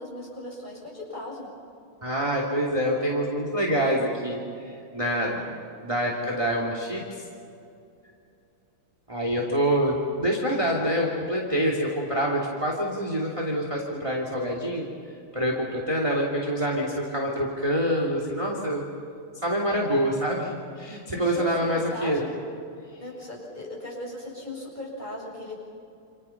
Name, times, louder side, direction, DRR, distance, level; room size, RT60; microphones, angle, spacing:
voice 1, 0.0-1.5 21.1-22.3 23.0-25.6, left 1 dB, 20° left, -3 dB, 7.2 m, -38 dB
voice 2, 2.0-5.4 5.8-7.2 9.1-14.9 15.3-18.8 19.3-22.2, equal, 15° right, -1 dB, 2.8 m, -26 dB
29.0 x 28.0 x 6.0 m, 2.5 s
omnidirectional pair, 2.4 m